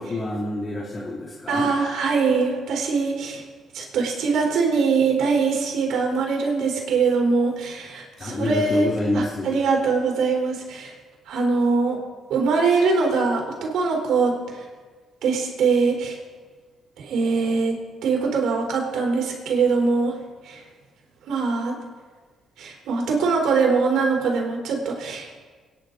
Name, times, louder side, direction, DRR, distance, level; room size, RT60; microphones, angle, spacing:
voice 1, 0.0-1.7 8.2-9.6, left 1 dB, 35° left, -4 dB, 2.7 m, -27 dB
voice 2, 1.5-3.4 3.7-10.9 11.3-12.0 12.3-14.6 15.2-16.2 17.0-17.7 18.0-20.2 20.4-20.6 21.3-21.7 22.6-25.3, right 4 dB, 80° right, 0 dB, 3.9 m, -22 dB
23.5 x 10.5 x 4.0 m, 1.4 s
cardioid pair, 90°, 0 cm